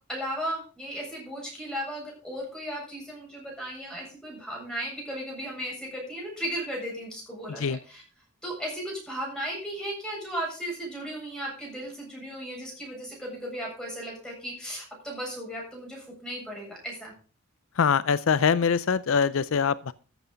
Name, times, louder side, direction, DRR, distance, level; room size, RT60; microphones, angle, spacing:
voice 1, 0.1-8.0 8.4-17.1, equal, 5° left, -3 dB, 7.6 m, -36 dB
voice 2, 7.5-7.8 17.8-19.9, left 6 dB, 65° left, 17 dB, 0.5 m, -23 dB
14.0 x 8.1 x 5.1 m, 0.37 s
head